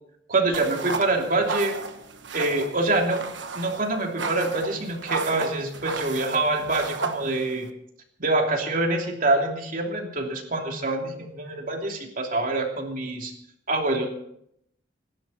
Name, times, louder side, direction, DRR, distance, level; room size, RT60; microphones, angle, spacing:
voice 1, 0.3-1.8 2.3-3.2 3.5-7.7 8.2-13.3 13.7-14.1, right 2 dB, 45° right, 2 dB, 3.1 m, -25 dB
sound 1, 0.5-7.7, right 4 dB, 70° right, 1.4 m, -34 dB
27.0 x 12.0 x 4.3 m, 0.74 s
head